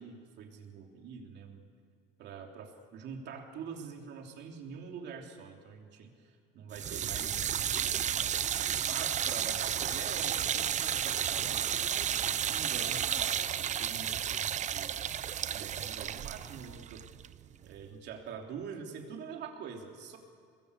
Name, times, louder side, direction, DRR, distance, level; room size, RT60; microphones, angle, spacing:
voice 1, 0.0-1.7 2.2-8.1 8.6-12.2 12.5-15.2 15.5-17.0 17.6-20.2, right 6 dB, 60° right, 3 dB, 3.2 m, -45 dB
sound 1, 6.7-17.8, right 9 dB, 40° right, 0.7 m, -32 dB
23.5 x 20.0 x 8.3 m, 2.2 s
cardioid pair, 115°, 20 cm